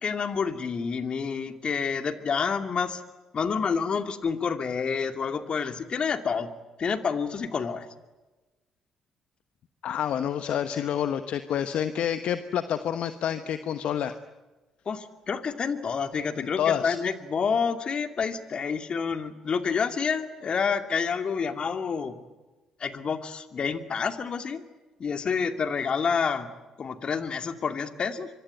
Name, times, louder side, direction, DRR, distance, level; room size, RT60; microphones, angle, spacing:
voice 1, 0.0-3.0 3.3-6.5 6.8-7.9 14.9-22.2 22.8-24.6 25.0-26.5 26.8-28.3, left 6 dB, 50° left, 8 dB, 2.6 m, -28 dB
voice 2, 9.8-14.1 16.4-17.0, left 9 dB, 65° left, 10 dB, 1.1 m, -28 dB
25.5 x 24.0 x 9.2 m, 1.2 s
hypercardioid pair, 50°, 2 cm